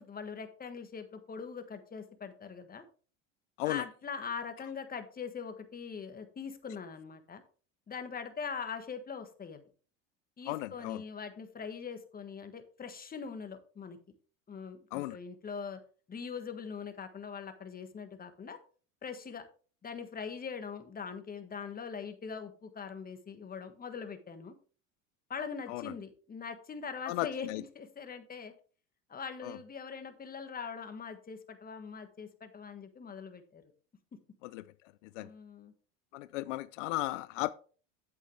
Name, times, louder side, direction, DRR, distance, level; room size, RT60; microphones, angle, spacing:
voice 1, 0.0-2.8 3.6-7.4 7.9-9.6 10.4-14.0 14.5-15.8 16.1-18.6 19.0-19.5 19.8-24.5 25.3-28.5 29.1-33.6 35.2-35.7, left 6 dB, 25° left, 1.5 m, -42 dB
voice 2, 10.5-11.0 14.9-15.2 25.7-25.9 27.1-27.6 29.4-29.6 34.4-34.7 35.1-35.3 36.1-37.5, left 18 dB, 85° left, 0.5 m, -35 dB
8.7 x 8.1 x 3.3 m
supercardioid pair, 100°, 36 cm